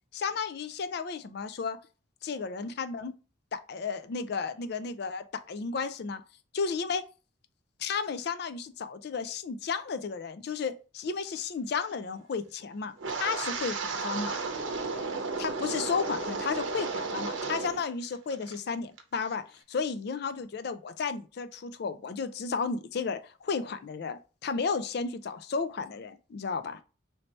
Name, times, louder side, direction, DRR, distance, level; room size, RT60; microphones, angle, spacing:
voice 1, 0.1-1.8 2.2-3.1 3.5-6.2 6.5-7.0 7.8-12.9 13.2-14.4 15.4-26.8, left 5 dB, 55° left, 0.4 m, -33 dB
Wind, 13.0-17.8 18.1-18.6 19.0-19.3, right 4 dB, 75° right, 0.7 m, -33 dB
3.2 x 2.7 x 4.2 m
head